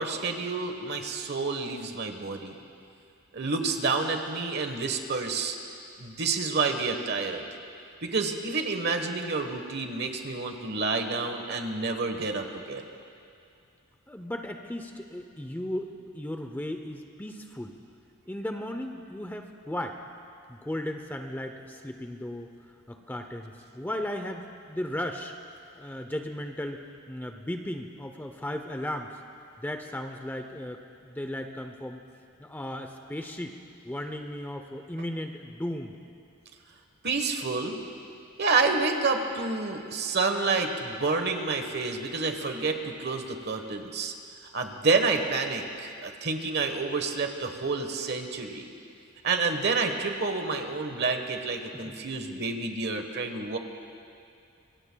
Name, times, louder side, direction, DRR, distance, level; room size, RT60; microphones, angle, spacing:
voice 1, 0.0-2.5 3.3-5.6 6.0-7.4 8.0-12.9 37.0-37.8 38.4-44.1 44.5-48.7 49.2-53.6, right 4 dB, 50° right, 5 dB, 1.2 m, -29 dB
voice 2, 14.1-17.7 18.3-20.0 20.5-25.3 25.7-29.2 29.6-32.0 32.4-33.6 33.8-35.9 51.7-52.0, left 1 dB, 10° left, 5 dB, 0.6 m, -36 dB
26.0 x 23.0 x 2.3 m, 2.4 s
head